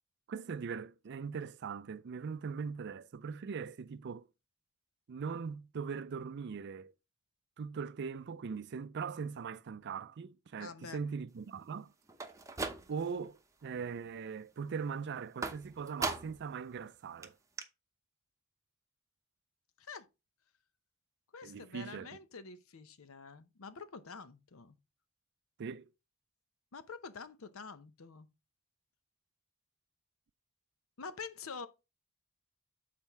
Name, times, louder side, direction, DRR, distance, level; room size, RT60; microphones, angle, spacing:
voice 1, 0.3-4.3 5.1-6.9 7.6-11.9 12.9-17.4 21.4-22.1 25.6-25.9, right 6 dB, 55° right, 0.4 m, -40 dB
voice 2, 10.6-11.0 19.8-20.1 21.3-24.8 26.7-28.3 31.0-31.7, left 5 dB, 85° left, 0.7 m, -47 dB
sound 1, 12.1-13.2 13.6-14.1 15.4-16.5 16.9-17.0 17.2-17.3 17.6-17.7, right 3 dB, 15° right, 0.7 m, -39 dB
7.2 x 4.3 x 4.6 m
head